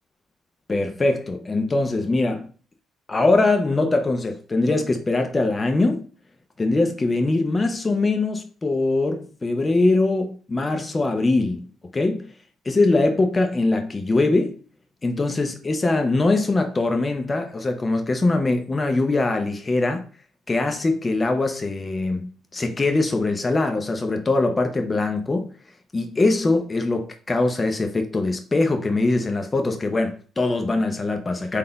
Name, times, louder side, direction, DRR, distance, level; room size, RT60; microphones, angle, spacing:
voice 1, 0.7-2.5 3.1-6.1 6.6-11.7 11.9-12.3 12.6-14.5 15.0-20.0 20.5-25.5 25.9-31.6, left 2 dB, 25° left, 0.7 m, -22 dB
4.1 x 2.7 x 3.9 m
cardioid pair, 90°, 0 cm